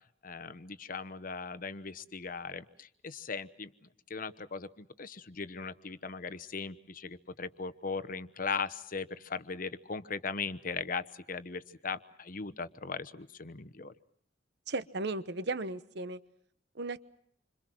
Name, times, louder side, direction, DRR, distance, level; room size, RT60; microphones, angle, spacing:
voice 1, 0.2-13.9, left 5 dB, 45° left, 14 dB, 1.0 m, -39 dB
voice 2, 14.7-16.2 16.7-17.0, right 2 dB, 60° right, 14 dB, 1.1 m, -35 dB
27.5 x 26.0 x 6.2 m, 0.67 s
head